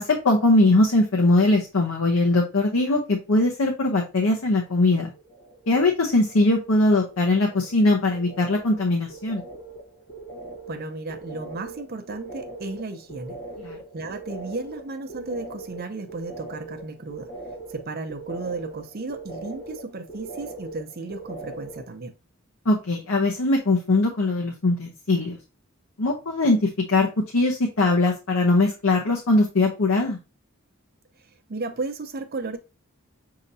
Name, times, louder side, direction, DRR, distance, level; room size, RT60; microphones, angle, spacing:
voice 1, 0.0-5.1 5.7-9.4 13.6-13.8 22.7-25.4 26.0-26.6 26.9-27.1 27.3-30.2, left 2 dB, 75° left, 0.8 m, -21 dB
sound 1, 4.3-4.8 5.1-5.8 6.1-21.9, right 2 dB, 50° left, 1.4 m, -41 dB
voice 2, 10.7-13.4 13.9-17.3 17.7-22.1 31.5-32.6, right 3 dB, 45° right, 0.7 m, -34 dB
6.4 x 2.9 x 2.7 m
head